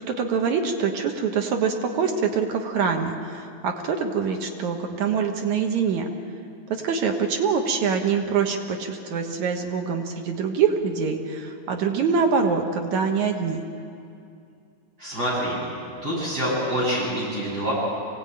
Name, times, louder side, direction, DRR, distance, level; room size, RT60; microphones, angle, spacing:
voice 1, 0.1-6.1 6.7-13.6, right 6 dB, 75° right, 4 dB, 2.8 m, -24 dB
voice 2, 15.0-15.6 16.0-17.7, equal, 30° right, -7 dB, 8.5 m, -26 dB
24.5 x 17.5 x 9.0 m, 2.5 s
omnidirectional pair, 3.4 m